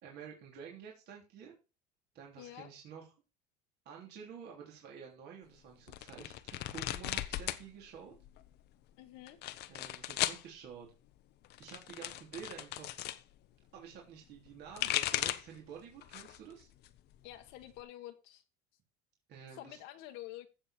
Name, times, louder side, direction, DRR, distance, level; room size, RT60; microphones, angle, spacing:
voice 1, 0.0-1.5 2.1-3.1 3.9-8.1 9.7-10.9 11.6-12.9 13.7-16.7 19.3-19.8, right 7 dB, 60° right, 3.4 m, -50 dB
voice 2, 2.4-2.7 9.0-9.4 17.2-18.4 19.5-20.5, left 14 dB, 75° left, 1.4 m, -48 dB
sound 1, 5.9-7.6 7.9-8.6 9.3-10.4 11.4-13.2 14.5-15.6 16.0-16.5 16.8-17.8, left 14 dB, 60° left, 0.9 m, -37 dB
15.0 x 7.0 x 4.4 m
cardioid pair, 125°, 20 cm